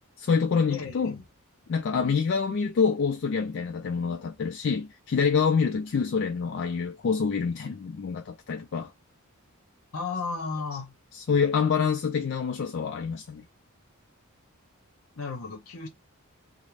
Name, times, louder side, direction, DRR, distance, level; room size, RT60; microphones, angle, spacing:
voice 1, 0.2-1.2 1.7-8.9 11.1-13.4, left 5 dB, 55° left, 0.4 m, -26 dB
voice 2, 0.7-1.2 9.9-11.0 15.2-15.9, left 4 dB, 70° left, 0.8 m, -34 dB
2.5 x 2.0 x 3.2 m
head